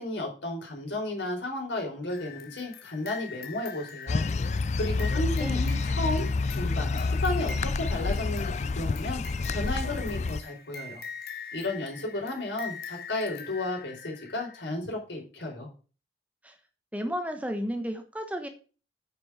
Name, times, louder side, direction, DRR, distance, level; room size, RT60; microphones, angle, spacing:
voice 1, 0.0-4.3 4.8-9.2 9.5-11.0 11.5-15.7, left 2 dB, 85° left, 0 dB, 4.7 m, -33 dB
sound 1, 2.1-14.7, left 5 dB, 55° left, 1.5 m, -43 dB
sound 2, 4.1-10.4, left 3 dB, 40° left, 0.3 m, -28 dB
voice 2, 16.9-18.5, equal, 10° right, 6 dB, 1.1 m, -33 dB
9.2 x 6.1 x 5.0 m, 0.36 s
head